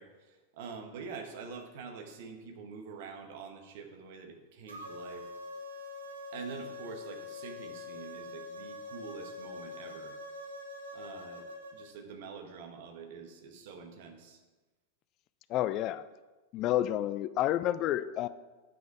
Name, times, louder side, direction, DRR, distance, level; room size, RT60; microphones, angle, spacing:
voice 1, 0.0-5.3 6.3-10.1 10.9-14.4, right 5 dB, 50° right, 4 dB, 1.3 m, -46 dB
sound 1, 4.7-11.9, left 2 dB, 70° right, 1.0 m, -44 dB
voice 2, 15.5-16.0 16.5-18.3, left 13 dB, 35° left, 15 dB, 0.3 m, -29 dB
9.5 x 5.8 x 4.7 m, 1.2 s
figure-of-eight pair, 90°, 0 cm